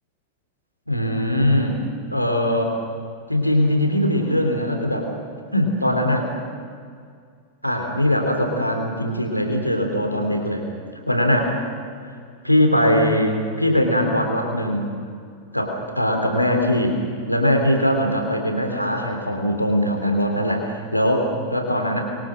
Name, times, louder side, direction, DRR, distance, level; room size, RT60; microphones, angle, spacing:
voice 1, 0.9-1.8 2.1-2.8 3.3-5.1 5.5-6.3 7.6-10.7 11.1-11.5 12.4-14.9 15.5-17.0 17.3-22.0, equal, 90° left, 3 dB, 3.5 m, -21 dB
27.5 x 23.0 x 6.5 m, 2.2 s
figure-of-eight pair, 90°, 0 cm